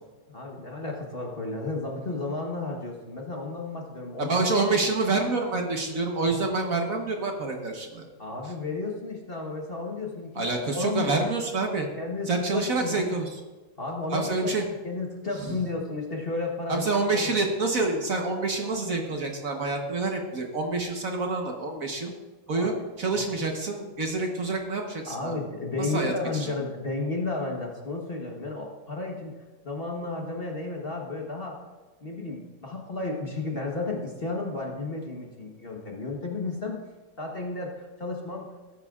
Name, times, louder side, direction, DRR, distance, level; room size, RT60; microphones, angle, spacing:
voice 1, 0.3-4.5 6.3-6.4 8.2-11.1 12.0-13.0 13.8-14.5 14.8-17.4 22.5-22.7 23.1-23.2 25.1-29.3 29.6-31.6 32.0-36.8 37.2-38.5, left 3 dB, 35° left, -1 dB, 1.2 m, -33 dB
voice 2, 4.2-8.1 10.3-11.9 12.3-13.4 14.1-14.6 15.3-15.6 16.7-22.1 22.5-25.4 25.8-26.5, right 3 dB, 50° right, 2 dB, 1.5 m, -27 dB
18.0 x 9.7 x 2.4 m, 1.3 s
omnidirectional pair, 2.0 m